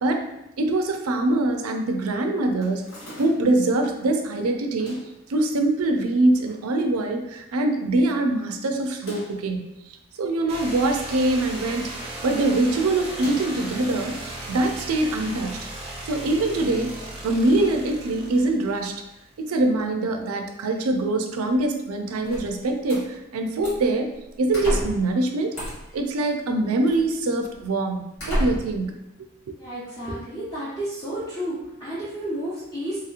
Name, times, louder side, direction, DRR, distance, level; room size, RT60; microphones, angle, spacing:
voice 1, 0.6-2.9 3.2-5.0 5.3-9.6 10.2-15.5 16.0-16.9 17.2-19.0 19.4-24.1 24.4-25.6 25.9-28.9 29.5-29.6, right 2 dB, 85° right, 4 dB, 0.4 m, -23 dB
sound 1, 2.6-3.6 4.7-5.2 6.0-6.7 7.0-7.1 7.3-7.4 8.9-9.5 10.5-11.3 11.6-11.9 13.1-13.7, equal, 65° left, 1.3 m, -43 dB
sound 2, 10.5-19.2, right 1 dB, 25° right, 0.5 m, -36 dB
sound 3, 22.2-23.0 23.6-23.9 24.5-25.1 25.5-26.0 26.9-27.0 27.6-27.7 28.2-28.8, equal, 85° left, 1.4 m, -29 dB
voice 2, 29.6-33.0, right 1 dB, 15° left, -11 dB, 0.6 m, -31 dB
2.9 x 2.8 x 2.4 m, 0.87 s
head